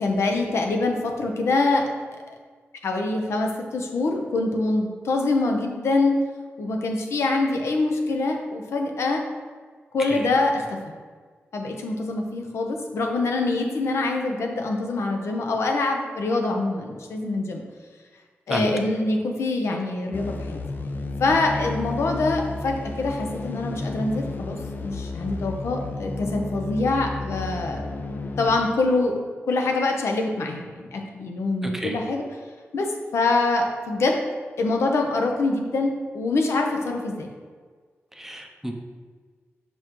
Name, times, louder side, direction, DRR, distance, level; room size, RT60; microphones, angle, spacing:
voice 1, 0.0-1.8 2.8-6.2 6.6-9.2 9.9-10.9 11.5-17.6 18.5-20.6 21.2-27.8 28.4-29.1 29.5-32.2 32.7-32.9 33.1-34.2 34.6-37.3, left 3 dB, 85° left, 2 dB, 0.8 m, -24 dB
sound 1, 20.1-28.6, left 3 dB, 45° left, 0.4 m, -32 dB
voice 2, 38.2-38.7, right 1 dB, 5° right, 3 dB, 0.5 m, -30 dB
5.9 x 5.5 x 3.1 m, 1.5 s
wide cardioid pair, 160°, 4 cm